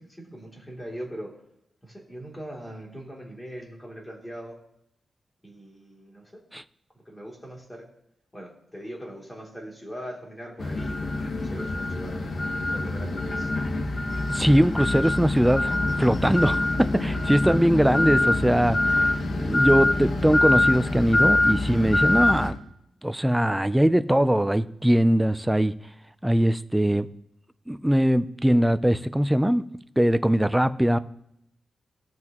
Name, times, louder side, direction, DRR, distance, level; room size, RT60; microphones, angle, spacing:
voice 1, 0.0-1.4 1.8-4.6 5.4-6.4 7.0-7.8 8.3-12.2 12.7-13.5, equal, 10° left, -2 dB, 2.9 m, -41 dB
sound 1, 10.6-22.5, left 2 dB, 55° left, 1.4 m, -24 dB
voice 2, 14.3-19.1 19.4-22.6 23.0-25.7 26.2-27.1 27.7-29.6 30.0-31.0, equal, 5° right, 12 dB, 0.4 m, -21 dB
17.5 x 6.1 x 3.0 m, 0.78 s
wide cardioid pair, 115°, 0 cm